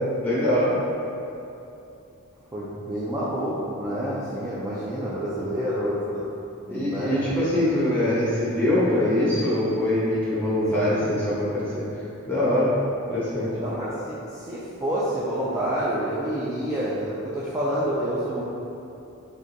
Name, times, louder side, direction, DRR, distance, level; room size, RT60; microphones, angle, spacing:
voice 1, 0.2-0.7 6.7-11.8 12.3-12.7 13.1-13.5, left 1 dB, 10° left, -9 dB, 1.0 m, -23 dB
voice 2, 2.5-6.2 6.7-7.2 10.7-11.4 13.6-18.4, equal, 15° right, -9 dB, 0.3 m, -28 dB
3.6 x 2.7 x 3.8 m, 2.8 s
head